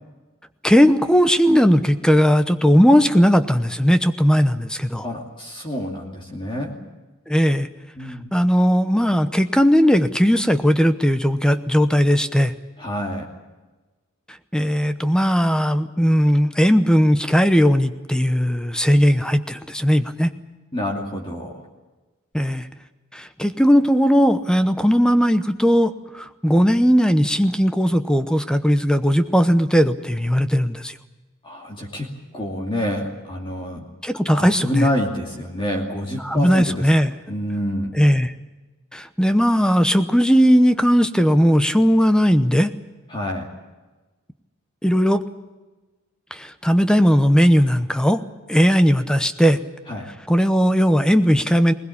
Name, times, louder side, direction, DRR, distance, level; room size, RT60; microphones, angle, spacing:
voice 1, 0.6-5.0 7.3-7.7 8.3-12.5 14.5-20.3 22.3-22.6 23.1-30.9 34.0-34.9 36.2-37.1 38.0-38.3 38.9-42.7 44.8-45.2 46.3-48.2 48.5-49.6 50.3-51.7, equal, 5° left, 10 dB, 0.8 m, -17 dB
voice 2, 5.0-6.7 7.9-8.3 12.8-13.3 20.7-21.7 31.4-33.8 34.3-36.9 37.3-37.9 43.1-43.5 49.9-50.1, left 1 dB, 25° left, 0 dB, 2.7 m, -27 dB
21.0 x 20.5 x 8.6 m, 1.2 s
head